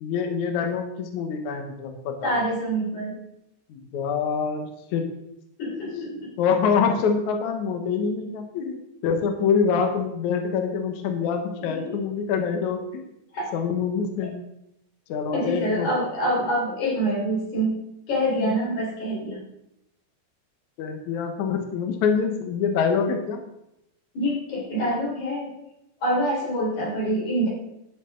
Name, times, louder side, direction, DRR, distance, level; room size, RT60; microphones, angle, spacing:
voice 1, 0.0-2.4 3.7-5.0 5.9-13.1 13.5-14.3 15.1-15.9 18.4-18.5 20.8-23.4, left 6 dB, 80° left, 5 dB, 1.7 m, -25 dB
voice 2, 2.2-3.1 5.6-6.2 11.6-12.0 13.3-13.5 15.3-17.7 18.1-19.4 24.1-25.5 26.0-27.5, equal, 45° left, -4 dB, 5.2 m, -26 dB
12.0 x 10.0 x 3.8 m, 0.85 s
omnidirectional pair, 5.1 m